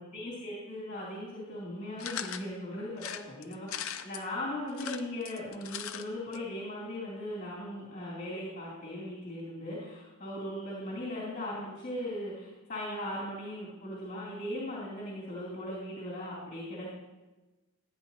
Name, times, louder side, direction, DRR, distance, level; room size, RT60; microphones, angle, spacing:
voice 1, 0.0-16.9, left 1 dB, 35° left, -7 dB, 3.0 m, -38 dB
sound 1, 2.0-2.5 3.0-4.2 4.7-6.0 6.3-6.4 6.6-6.7, left 9 dB, 65° left, 0.6 m, -39 dB
14.0 x 9.2 x 2.9 m, 1.1 s
head